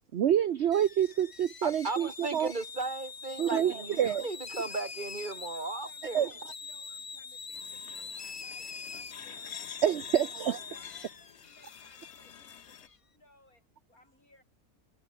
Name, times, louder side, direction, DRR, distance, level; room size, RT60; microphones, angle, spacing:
voice 1, 0.1-2.5 3.4-4.3 6.1-6.3 9.8-10.6, right 10 dB, 55° right, 0.9 m, -27 dB
sound 1, 0.7-13.0, left 5 dB, 30° left, 0.6 m, -44 dB
voice 2, 1.6-6.3, right 3 dB, 35° right, 1.9 m, -36 dB
voice 3, 4.6-9.9 10.2-14.4, left 1 dB, 70° left, 8.3 m, -62 dB
sound 2, 7.5-12.9, left 9 dB, 55° left, 1.0 m, -48 dB
omnidirectional pair, 1.6 m